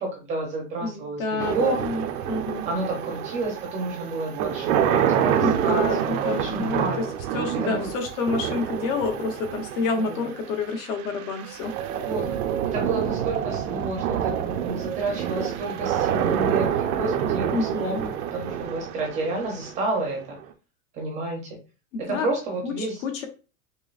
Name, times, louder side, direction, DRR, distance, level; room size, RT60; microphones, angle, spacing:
voice 1, 0.0-1.8 2.7-7.0 7.6-7.9 9.9-10.3 12.0-12.4 12.6-20.2 20.9-21.6 22.0-22.9, right 2 dB, 15° right, 0 dB, 0.6 m, -30 dB
voice 2, 0.8-2.7 5.4-7.1 7.3-11.8 17.5-18.0 21.9-22.3 22.6-23.3, left 4 dB, 55° left, 4 dB, 1.0 m, -29 dB
sound 1, 1.4-20.4, right 9 dB, 70° right, 0.6 m, -27 dB
5.2 x 2.1 x 2.4 m, 0.34 s
supercardioid pair, 170°, 45 cm